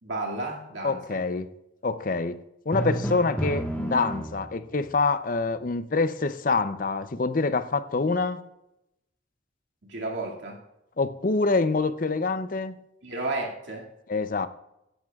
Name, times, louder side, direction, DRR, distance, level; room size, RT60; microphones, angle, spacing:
voice 1, 0.0-1.2 9.8-10.6 13.0-13.9, right 2 dB, 75° right, 2.3 m, -32 dB
voice 2, 0.8-1.5 1.8-2.4 2.7-8.4 11.0-12.8 14.1-14.5, left 3 dB, 45° left, 0.5 m, -26 dB
Drum, 2.7-4.7, right 1 dB, 10° left, 1.4 m, -30 dB
16.0 x 10.5 x 2.4 m
head